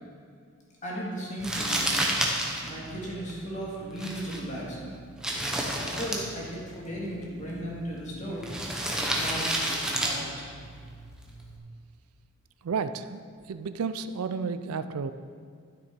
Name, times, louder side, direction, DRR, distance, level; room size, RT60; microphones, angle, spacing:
voice 1, 0.8-2.1 2.6-5.0 5.7-8.5 9.0-10.4, equal, 35° left, -4 dB, 2.2 m, -36 dB
Crumpling crinkling, 1.4-11.6, right 1 dB, 5° right, 0.9 m, -32 dB
voice 2, 12.6-13.2 13.5-15.1, right 5 dB, 80° right, 11 dB, 0.4 m, -31 dB
12.0 x 6.6 x 4.4 m, 2.1 s
head